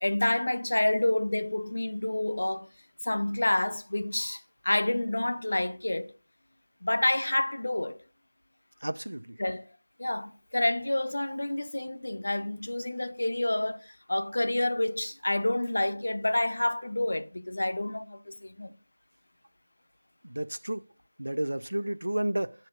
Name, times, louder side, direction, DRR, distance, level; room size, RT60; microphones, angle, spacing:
voice 1, 0.0-2.7 3.0-6.1 6.8-8.0 9.4-9.7 10.0-18.7, left 1 dB, 65° left, 0.6 m, -28 dB
voice 2, 8.8-9.2 20.3-20.8 21.2-22.5, right 1 dB, 85° right, 0.3 m, -31 dB
9.8 x 5.2 x 2.4 m
figure-of-eight pair, 170°, 0 cm